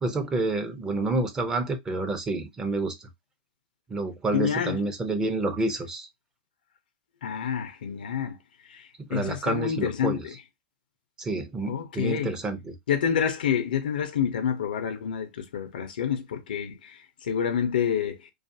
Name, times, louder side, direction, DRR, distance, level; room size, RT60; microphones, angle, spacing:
voice 1, 0.0-3.1 3.9-6.1 9.1-10.2 11.2-12.8, right 2 dB, 15° right, 0.5 m, -29 dB
voice 2, 4.3-4.8 7.2-8.4 8.7-10.3 11.7-12.3 12.9-18.3, left 8 dB, 90° left, 0.6 m, -28 dB
2.5 x 2.4 x 2.6 m
supercardioid pair, 150°, 5 cm